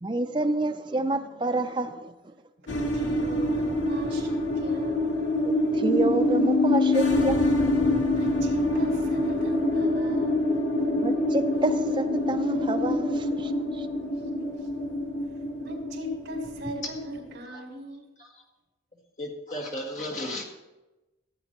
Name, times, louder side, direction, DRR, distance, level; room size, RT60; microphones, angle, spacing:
voice 1, 0.0-2.1 5.7-7.8 11.0-13.9, right 2 dB, 25° right, 0.5 m, -28 dB
voice 2, 2.6-5.0 8.2-10.4 14.4-14.5 15.6-18.1, equal, 65° right, 3.6 m, -38 dB
sound 1, 2.7-17.4, left 1 dB, 85° left, 1.4 m, -25 dB
voice 3, 19.2-20.4, left 1 dB, 40° left, 1.8 m, -34 dB
15.5 x 8.2 x 3.0 m
head